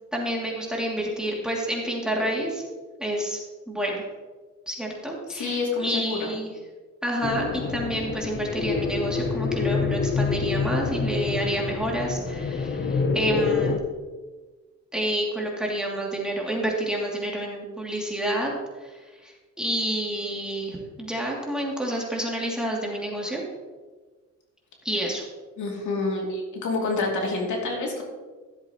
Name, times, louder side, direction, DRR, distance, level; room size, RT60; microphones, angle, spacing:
voice 1, 0.1-2.6 3.0-3.4 3.7-4.0 4.7-6.5 7.0-13.8 14.9-18.5 18.8-18.9 19.2-23.4 24.8-25.2, right 1 dB, 5° right, -3 dB, 2.7 m, -29 dB
voice 2, 5.3-6.3 25.6-28.0, left 3 dB, 75° left, -1 dB, 2.8 m, -28 dB
sound 1, 7.2-13.8, left 5 dB, 40° left, 0.9 m, -27 dB
15.0 x 7.9 x 3.1 m, 1.3 s
cardioid pair, 90°, 30 cm